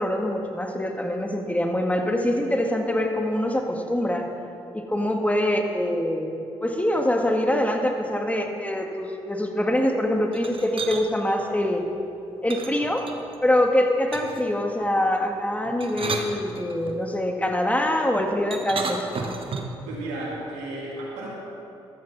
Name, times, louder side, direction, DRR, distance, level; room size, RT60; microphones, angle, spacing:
voice 1, 0.0-4.3 4.7-6.3 6.6-11.9 12.4-13.0 13.4-19.4, left 1 dB, 10° left, 3 dB, 1.9 m, -24 dB
sound 1, 10.3-11.0 12.5-13.4 14.1-14.5 15.6-17.0 18.5-19.8, right 4 dB, 50° right, 1.4 m, -33 dB
voice 2, 19.8-21.3, right 2 dB, 85° right, -4 dB, 2.8 m, -33 dB
13.0 x 13.0 x 4.1 m, 2.7 s
hypercardioid pair, 45°, 12 cm